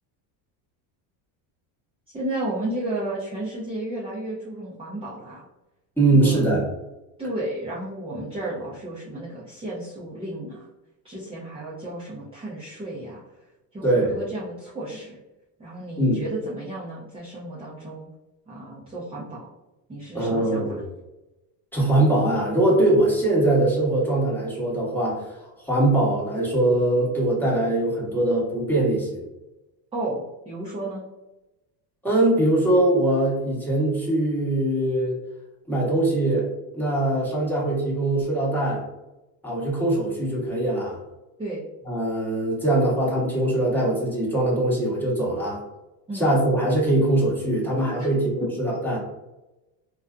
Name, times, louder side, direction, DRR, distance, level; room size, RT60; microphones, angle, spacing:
voice 1, 2.1-5.5 6.1-6.5 7.2-10.7 11.0-15.2 15.6-18.1 18.5-19.5 19.9-20.8 29.9-31.1 41.4-41.6 46.1-46.3 48.0-48.1, right 1 dB, 10° right, -7 dB, 0.5 m, -33 dB
voice 2, 6.0-6.6 13.8-14.1 16.0-16.2 20.1-20.8 21.7-25.3 25.6-29.2 32.0-35.2 35.7-36.5 36.7-38.8 39.4-41.0 41.9-45.6 46.1-49.0, right 1 dB, 5° left, -6 dB, 1.0 m, -22 dB
2.5 x 2.3 x 2.3 m, 1.0 s
supercardioid pair, 110°, 49 cm